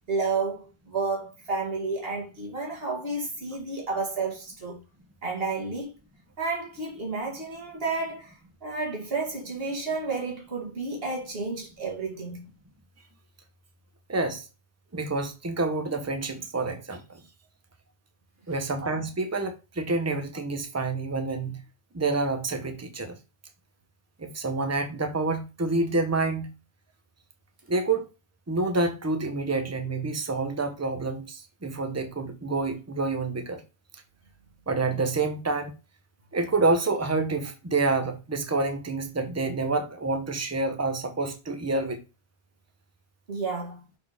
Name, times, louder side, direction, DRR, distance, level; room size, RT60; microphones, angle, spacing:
voice 1, 0.1-4.8 5.2-5.9 6.4-8.4 8.6-12.5 43.3-43.8, right 3 dB, 65° right, 2.3 m, -31 dB
voice 2, 14.1-14.5 14.9-17.2 18.5-21.6 21.9-23.2 24.2-26.5 27.7-28.1 28.5-33.6 33.9-34.0 34.7-35.7 36.3-42.0, right 3 dB, 15° right, 0.9 m, -28 dB
6.5 x 4.2 x 3.6 m
omnidirectional pair, 1.1 m